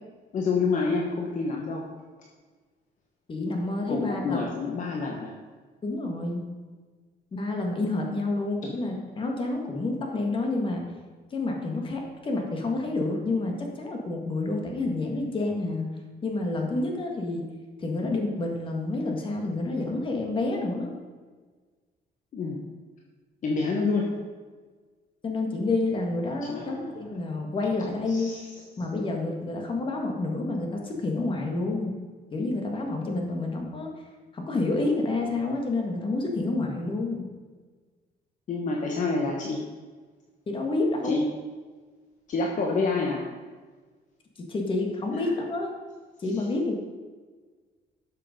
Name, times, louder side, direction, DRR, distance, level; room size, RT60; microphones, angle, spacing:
voice 1, 0.3-1.8 3.9-5.3 22.3-22.6 23.4-24.1 26.4-27.0 28.1-28.5 38.5-39.6 41.0-41.2 42.3-43.2 45.1-45.3 46.4-46.5, left 4 dB, 45° left, 0 dB, 1.2 m, -28 dB
voice 2, 3.3-4.4 5.8-6.4 7.3-10.8 11.3-15.9 16.2-17.4 17.8-20.9 25.2-28.3 28.8-32.0 32.3-33.9 34.3-37.3 40.5-41.2 44.4-45.7 46.2-46.8, left 2 dB, 30° left, 2 dB, 1.8 m, -29 dB
12.5 x 6.6 x 5.2 m, 1.4 s
cardioid pair, 170°, 18 cm